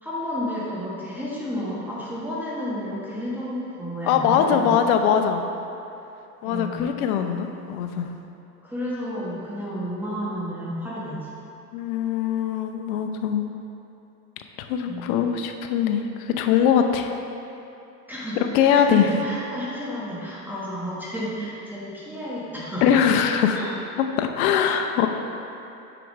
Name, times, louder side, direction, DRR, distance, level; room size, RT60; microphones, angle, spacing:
voice 1, 0.0-4.8 6.4-6.8 8.6-11.3 14.9-15.1 18.1-22.8 23.5-23.7, equal, 5° right, -9 dB, 1.2 m, -31 dB
voice 2, 4.1-5.4 6.4-8.1 11.7-13.5 14.6-17.2 18.4-19.1 22.8-23.6 24.0-25.1, left 8 dB, 65° left, 5 dB, 0.7 m, -22 dB
6.9 x 6.0 x 3.1 m, 2.8 s
hypercardioid pair, 105°, 46 cm